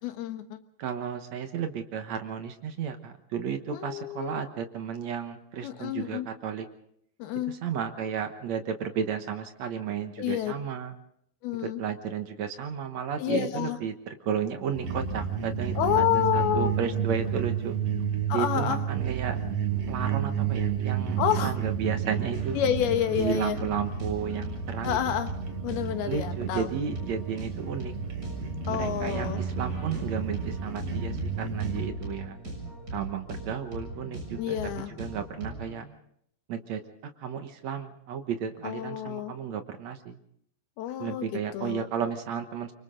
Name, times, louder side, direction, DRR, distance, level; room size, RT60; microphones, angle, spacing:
voice 1, 0.0-0.6 3.7-4.4 5.6-6.3 7.2-7.6 10.2-10.5 11.4-11.8 13.2-13.8 15.8-16.7 18.3-18.8 21.2-21.6 22.5-23.6 24.8-25.3 25.6-26.7 28.7-29.4 34.4-34.9 38.6-39.3 40.8-41.9, left 11 dB, 70° left, 8 dB, 3.1 m, -29 dB
voice 2, 0.8-6.7 7.5-11.0 11.6-17.8 18.3-19.4 19.9-22.6 23.2-25.2 26.0-27.9 28.7-32.4 32.9-34.7 35.0-35.9 36.5-36.8 37.2-40.2 41.0-42.7, right 7 dB, 65° right, 7 dB, 1.7 m, -33 dB
sound 1, 14.7-31.9, right 7 dB, 45° right, 2.4 m, -31 dB
sound 2, 22.3-35.8, right 1 dB, 20° right, 7.4 m, -40 dB
28.0 x 24.5 x 3.8 m, 0.70 s
omnidirectional pair, 4.8 m